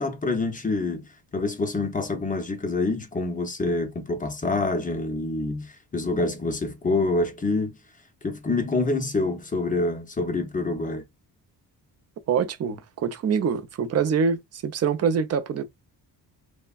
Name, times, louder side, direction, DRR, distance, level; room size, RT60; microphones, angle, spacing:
voice 1, 0.0-7.8 8.2-11.0, left 2 dB, 20° left, 0.5 m, -26 dB
voice 2, 12.3-15.6, right 6 dB, 40° right, 0.4 m, -25 dB
3.2 x 2.1 x 2.2 m
cardioid pair, 135°, 41 cm